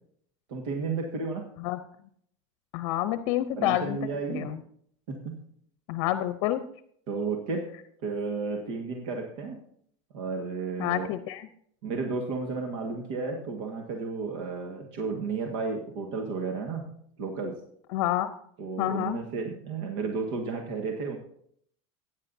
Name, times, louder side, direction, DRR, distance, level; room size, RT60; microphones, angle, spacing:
voice 1, 0.5-1.5 3.6-4.6 5.1-5.4 7.1-7.7 8.0-9.7 10.1-11.1 11.8-16.9 17.2-17.6 18.6-21.2, right 4 dB, 70° right, 2 dB, 1.7 m, -33 dB
voice 2, 2.7-4.0 4.3-4.6 5.9-6.6 10.8-11.5 17.9-18.3 18.8-19.2, left 13 dB, 60° left, 11 dB, 0.7 m, -28 dB
16.0 x 9.8 x 2.7 m, 0.65 s
supercardioid pair, 145°, 16 cm